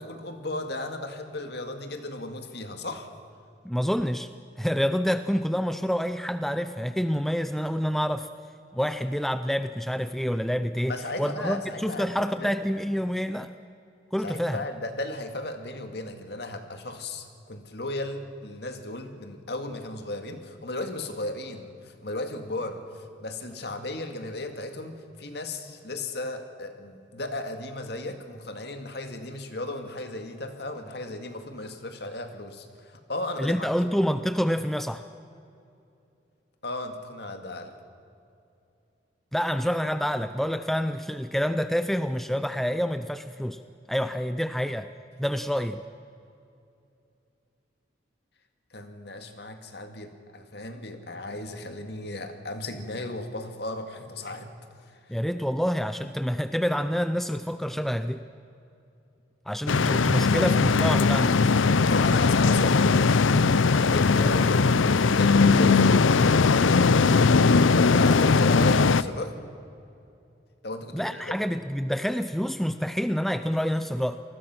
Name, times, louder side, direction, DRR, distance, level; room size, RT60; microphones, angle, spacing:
voice 1, 0.0-3.1 10.9-12.5 14.2-33.7 36.6-37.7 48.7-54.5 55.1-55.2 61.8-62.9 63.9-66.6 67.7-69.4 70.6-71.4, left 2 dB, 55° left, 6 dB, 2.1 m, -35 dB
voice 2, 3.6-4.3 4.6-8.3 8.7-13.5 14.1-14.6 33.4-35.0 39.3-43.6 43.9-44.9 45.2-45.8 55.1-58.2 59.5-61.4 70.9-74.2, equal, ahead, 10 dB, 0.5 m, -27 dB
sound 1, 59.7-69.0, left 4 dB, 85° left, 0.6 m, -20 dB
28.0 x 20.5 x 6.1 m, 2.7 s
head